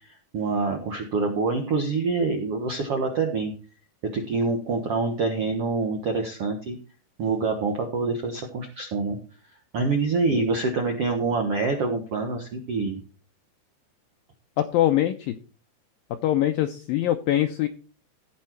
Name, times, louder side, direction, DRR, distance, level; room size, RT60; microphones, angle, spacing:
voice 1, 0.0-3.5 4.0-6.8 7.2-9.2 9.7-13.0, right 3 dB, 70° right, 3 dB, 1.4 m, -26 dB
voice 2, 14.6-15.3 16.2-17.7, left 13 dB, 90° left, 7 dB, 2.0 m, -23 dB
16.5 x 5.5 x 4.6 m, 0.37 s
omnidirectional pair, 4.9 m